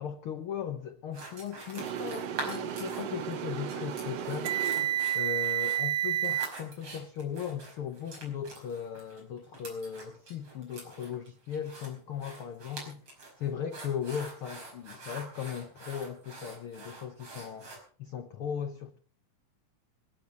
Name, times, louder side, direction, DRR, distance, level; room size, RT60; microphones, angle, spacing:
voice 1, 0.0-4.6 5.1-19.0, left 8 dB, 85° left, 1.2 m, -38 dB
sound 1, 1.1-3.3 3.7-17.8, right 3 dB, 45° right, 6.0 m, -45 dB
sound 2, 1.8-6.5, right 11 dB, 60° right, 1.7 m, -31 dB
25.5 x 9.0 x 5.3 m
omnidirectional pair, 3.9 m